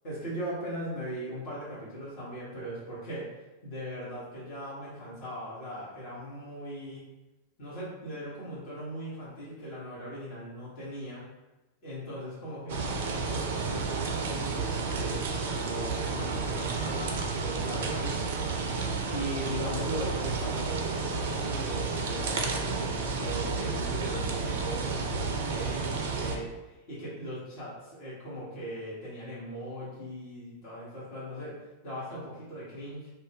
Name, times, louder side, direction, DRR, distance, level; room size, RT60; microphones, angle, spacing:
voice 1, 0.0-7.0 7.6-11.2 11.8-31.6 31.8-33.1, equal, 45° left, -9 dB, 1.2 m, -39 dB
sound 1, 12.7-26.4, right 4 dB, 55° right, 0.4 m, -31 dB
2.5 x 2.1 x 3.4 m, 1.1 s
figure-of-eight pair, 90°, 0 cm